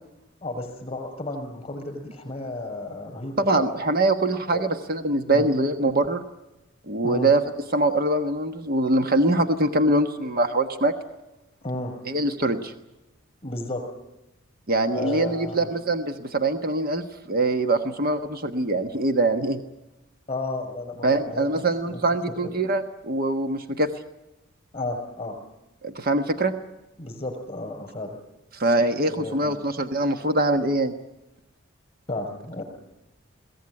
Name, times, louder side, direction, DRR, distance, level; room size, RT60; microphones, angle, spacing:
voice 1, 0.4-3.7 4.5-4.6 5.3-5.5 7.0-7.3 11.6-11.9 13.4-13.8 14.9-15.7 20.3-22.0 22.3-22.4 24.7-25.4 27.0-28.2 29.1-29.6 32.1-32.6, left 2 dB, 25° left, 4 dB, 6.9 m, -33 dB
voice 2, 3.4-6.3 6.9-7.4 7.7-10.9 12.1-12.7 14.7-19.6 21.0-23.9 25.8-26.5 28.5-30.9, right 2 dB, 45° right, 8 dB, 1.3 m, -23 dB
22.5 x 18.0 x 9.8 m, 0.95 s
head